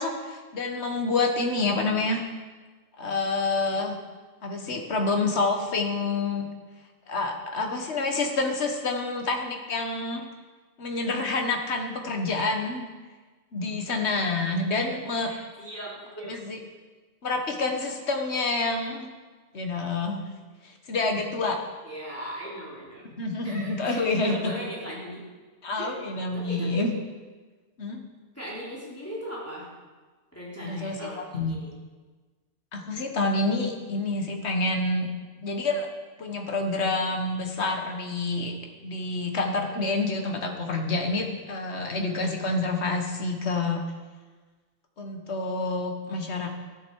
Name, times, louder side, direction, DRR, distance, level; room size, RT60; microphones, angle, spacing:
voice 1, 0.0-2.3 3.0-4.0 4.4-6.5 7.1-10.3 10.8-12.9 13.5-15.3 16.2-16.6 17.2-19.1 19.5-20.2 20.6-21.6 23.2-24.5 25.6-26.9 27.8-28.0 30.6-31.6 32.7-35.1 35.4-35.9 36.2-38.5 38.8-43.8 45.0-46.5, left 3 dB, 80° left, 3 dB, 1.6 m, -28 dB
voice 2, 15.2-16.4 21.8-23.0 23.4-25.3 25.8-26.0 26.3-26.9 28.3-29.7 30.3-31.7, right 1 dB, 15° left, -7 dB, 3.1 m, -38 dB
12.5 x 10.5 x 4.7 m, 1.3 s
omnidirectional pair, 1.1 m